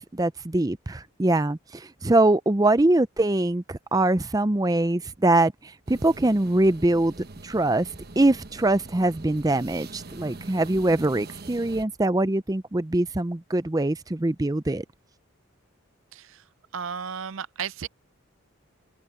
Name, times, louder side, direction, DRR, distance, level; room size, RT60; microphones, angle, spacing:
voice 1, 0.1-5.5 5.9-7.1 7.4-7.9 8.2-14.8, right 2 dB, 15° right, 0.5 m, -23 dB
sound 1, 5.9-11.8, right 2 dB, 50° right, 1.1 m, -43 dB
voice 2, 16.7-17.9, right 7 dB, 75° right, 0.5 m, -33 dB
open air
head